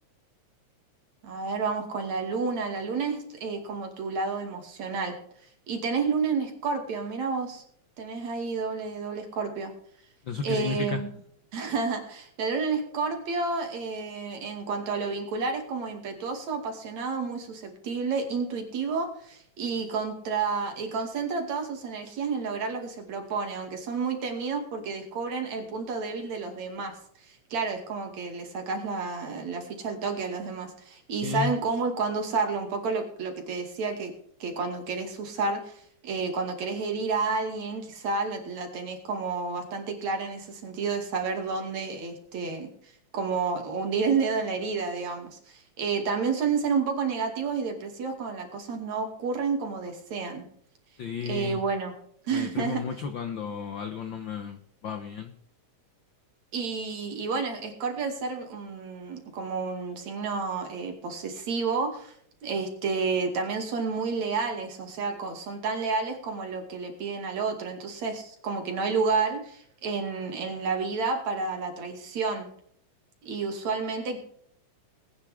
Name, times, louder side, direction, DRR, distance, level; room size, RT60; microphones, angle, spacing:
voice 1, 1.2-5.2 5.7-7.6 8.0-9.7 10.4-11.1 11.5-26.9 27.5-34.1 34.4-42.7 43.1-50.5 51.2-51.9 52.3-52.8 56.5-62.1 62.4-72.5 73.2-74.2, right 4 dB, 70° right, 3 dB, 3.7 m, -30 dB
voice 2, 10.3-11.0 31.2-31.5 51.0-51.6 52.3-55.3, left 5 dB, 70° left, 7 dB, 1.1 m, -33 dB
20.0 x 10.0 x 3.6 m, 0.64 s
omnidirectional pair, 3.4 m